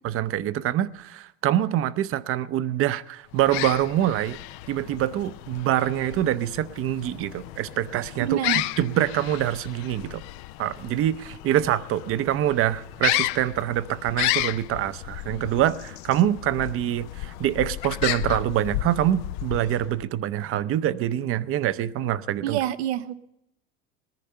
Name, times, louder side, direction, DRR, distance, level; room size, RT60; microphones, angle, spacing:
voice 1, 0.0-4.4 4.7-8.4 8.8-10.2 10.6-22.6, right 12 dB, 45° right, 15 dB, 0.6 m, -25 dB
sound 1, 3.3-20.1, left 17 dB, 60° left, 0.5 m, -33 dB
voice 2, 8.2-8.7 22.4-23.1, right 12 dB, 85° right, 14 dB, 0.7 m, -27 dB
19.0 x 10.5 x 5.6 m, 0.85 s
supercardioid pair, 100°, 31 cm